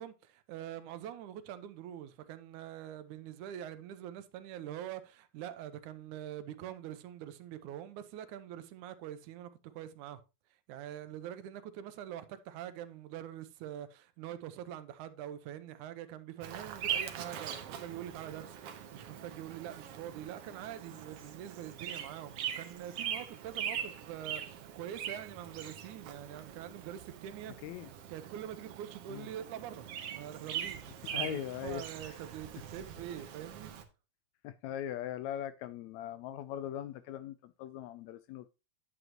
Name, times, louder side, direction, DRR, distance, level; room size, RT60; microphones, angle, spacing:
voice 1, 0.0-10.2 10.7-27.5 28.1-29.9 30.1-33.7, right 11 dB, 80° right, 2.1 m, -44 dB
Bird vocalization bird call bird song, 16.4-33.8, right 9 dB, 65° right, 1.7 m, -42 dB
voice 2, 31.0-32.2 34.4-38.5, left 11 dB, 80° left, 1.6 m, -40 dB
9.2 x 7.9 x 2.9 m
omnidirectional pair, 3.6 m